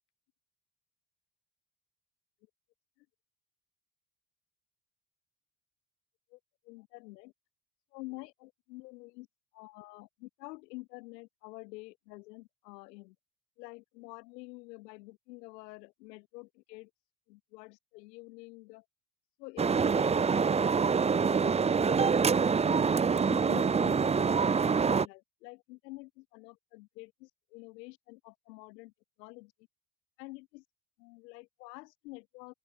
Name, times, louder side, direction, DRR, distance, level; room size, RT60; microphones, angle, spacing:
voice 1, 6.6-7.3 7.9-9.3 9.5-13.2 13.6-16.9 17.3-18.9 19.4-28.9 29.2-29.5 30.2-30.7 31.0-32.5, left 23 dB, 85° left, 5.2 m, -48 dB
sound 1, 19.6-25.1, right 5 dB, 15° right, 0.4 m, -26 dB
open air
hypercardioid pair, 70°, 48 cm